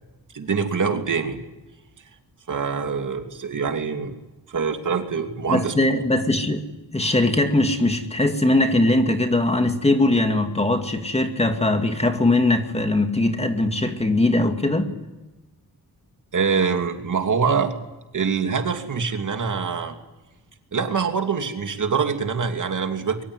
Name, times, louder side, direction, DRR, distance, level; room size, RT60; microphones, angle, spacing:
voice 1, 0.3-1.4 2.5-4.1 4.5-5.7 16.3-17.7 18.1-20.0 20.7-23.2, right 5 dB, 55° right, 5 dB, 2.9 m, -24 dB
voice 2, 5.5-6.6 6.9-14.9, left 2 dB, 15° left, 6 dB, 2.4 m, -20 dB
24.5 x 23.5 x 9.9 m, 1.1 s
wide cardioid pair, 140°, 37 cm